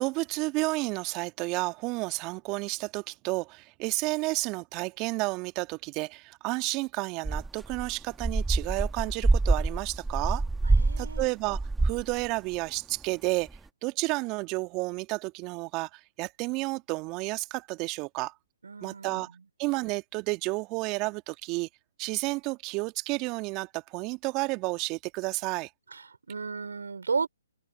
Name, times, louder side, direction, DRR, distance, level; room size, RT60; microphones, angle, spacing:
voice 1, 0.0-10.4 11.0-13.5 13.8-18.3 18.8-19.3 19.6-21.7 22.0-25.7, right 24 dB, 25° right, 2.1 m, -31 dB
sound 1, 7.3-12.3 12.5-12.6 13.5-13.6, right 3 dB, 5° right, 1.8 m, -26 dB
voice 2, 10.6-11.3 18.6-19.2 25.9-27.3, right 5 dB, 70° right, 4.2 m, -34 dB
figure-of-eight pair, 135°, 0 cm